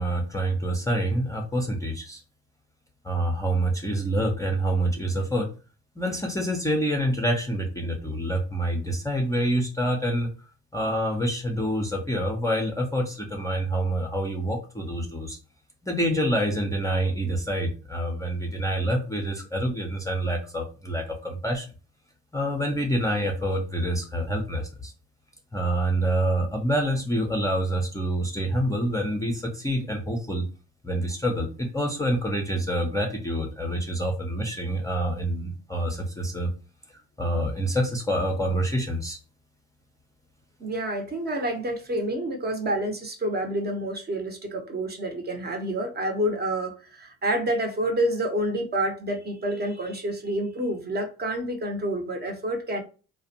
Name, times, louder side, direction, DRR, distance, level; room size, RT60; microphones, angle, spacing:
voice 1, 0.0-2.2 3.0-5.5 6.0-10.3 10.7-15.4 15.8-21.7 22.3-24.9 25.5-30.5 30.8-36.5 37.2-39.2, right 1 dB, 10° left, 1 dB, 0.5 m, -27 dB
voice 2, 40.6-52.8, right 1 dB, 25° right, 4 dB, 0.7 m, -28 dB
2.4 x 2.1 x 2.7 m, 0.35 s
hypercardioid pair, 70°, 36 cm